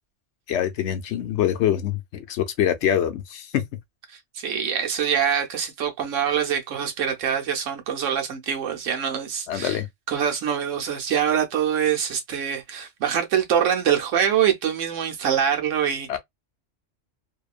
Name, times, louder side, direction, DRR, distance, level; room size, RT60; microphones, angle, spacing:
voice 1, 0.5-3.6 9.5-9.9 16.1-16.2, left 10 dB, 70° left, 0.9 m, -24 dB
voice 2, 4.3-9.8 10.1-16.2, right 8 dB, 85° right, 1.1 m, -24 dB
2.7 x 2.2 x 2.3 m
omnidirectional pair, 1.2 m